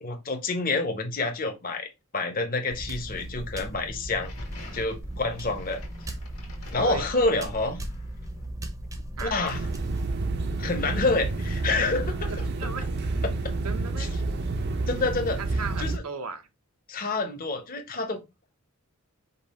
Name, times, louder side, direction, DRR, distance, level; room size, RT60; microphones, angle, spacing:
voice 1, 0.0-4.3 4.7-5.8 6.7-7.8 9.2-9.7 10.6-12.3 13.2-13.4 14.0-14.1 14.9-15.4 15.8-16.0 16.9-18.2, left 3 dB, 40° left, 0.9 m, -28 dB
sound 1, 2.7-10.1, right 1 dB, 15° right, 0.7 m, -37 dB
sound 2, 4.2-8.4, left 2 dB, 85° left, 1.8 m, -48 dB
sound 3, 9.5-16.0, right 2 dB, 50° right, 0.6 m, -29 dB
voice 2, 12.6-13.2 13.6-14.1 15.4-16.5, right 5 dB, 85° right, 0.8 m, -36 dB
5.4 x 2.3 x 4.2 m
head